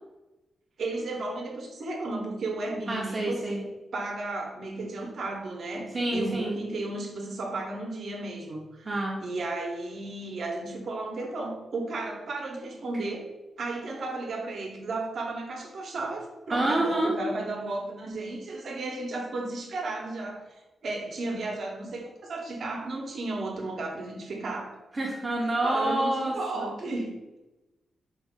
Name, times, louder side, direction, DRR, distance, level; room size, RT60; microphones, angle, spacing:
voice 1, 0.8-3.7 3.9-8.9 9.2-13.2 13.6-24.8 25.6-27.4, right 2 dB, 60° right, 1 dB, 0.8 m, -34 dB
voice 2, 2.9-3.6 5.9-6.6 8.8-9.2 16.5-17.1 24.9-26.7, right 1 dB, 25° right, -3 dB, 0.6 m, -28 dB
4.4 x 2.4 x 3.5 m, 1.0 s
wide cardioid pair, 170°, 0 cm